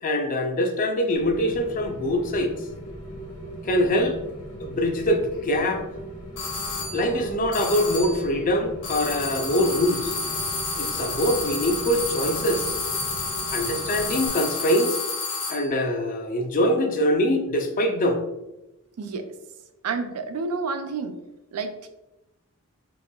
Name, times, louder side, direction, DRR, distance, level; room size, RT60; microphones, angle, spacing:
voice 1, 0.0-2.5 3.6-4.2 4.6-5.8 6.9-10.1 10.8-12.7 13.5-15.0 15.5-18.2, equal, 35° left, 5 dB, 0.4 m, -23 dB
Rain, 1.1-14.3, right 1 dB, 85° left, 1.2 m, -38 dB
sound 1, 6.4-7.1 7.5-8.3 8.8-15.7, left 3 dB, 55° left, 1.0 m, -30 dB
voice 2, 19.0-19.3 19.8-21.2 21.5-21.9, right 4 dB, 85° right, 7 dB, 0.4 m, -29 dB
4.1 x 2.8 x 2.3 m, 0.95 s
head